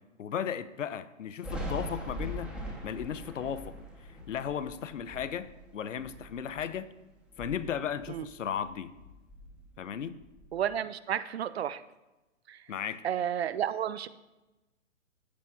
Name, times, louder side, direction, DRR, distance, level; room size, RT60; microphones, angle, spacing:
voice 1, 0.2-2.5 2.8-3.8 4.3-6.9 7.4-8.9 9.8-10.2 12.7-13.0, left 8 dB, 70° left, 14 dB, 0.7 m, -35 dB
Thunder, 1.4-6.9 7.2-8.7 9.0-10.7, equal, ahead, 0.9 m, -42 dB
voice 2, 10.5-11.8 12.5-12.7 13.0-14.1, right 9 dB, 55° right, 15 dB, 0.5 m, -32 dB
14.5 x 6.3 x 2.3 m, 1.0 s
figure-of-eight pair, 130°, 39 cm